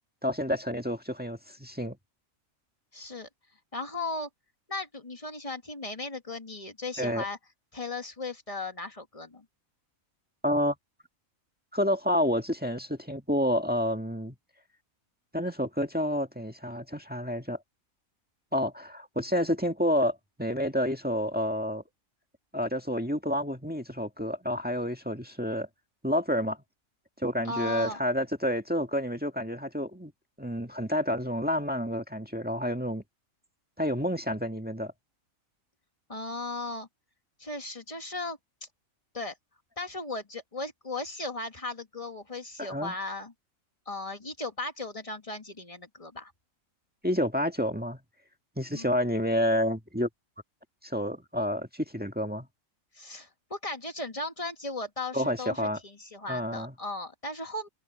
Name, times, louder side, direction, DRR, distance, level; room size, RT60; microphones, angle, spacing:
voice 1, 0.2-2.0 7.0-7.2 10.4-10.8 11.7-14.3 15.3-17.6 18.5-21.8 22.5-25.7 26.0-26.6 27.2-30.1 30.4-33.0 33.8-34.9 42.6-42.9 47.0-48.0 48.6-50.1 50.8-52.5 55.1-55.8 56.3-56.7, equal, 5° right, 1.6 m, -29 dB
voice 2, 2.9-3.3 3.7-4.3 4.7-7.4 7.7-9.5 27.4-28.0 36.1-36.9 37.4-38.7 39.1-39.3 39.8-43.3 43.9-46.3 48.7-48.9 52.9-57.7, left 2 dB, 25° left, 2.0 m, -37 dB
omnidirectional pair, 1.4 m